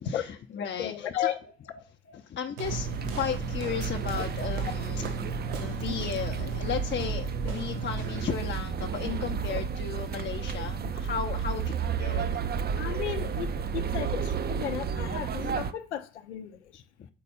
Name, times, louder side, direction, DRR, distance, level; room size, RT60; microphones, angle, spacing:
voice 1, 0.0-1.3 2.1-5.3 5.6-12.4 17.0-17.1, left 8 dB, 35° left, 0.7 m, -35 dB
voice 2, 0.8-1.4 4.7-4.8 12.8-16.8, left 11 dB, 85° left, 0.6 m, -34 dB
sound 1, 2.6-15.7, right 6 dB, 30° right, 0.5 m, -32 dB
sound 2, 2.6-8.4, right 4 dB, 70° right, 1.0 m, -37 dB
4.5 x 4.1 x 5.4 m
figure-of-eight pair, 45°, 33 cm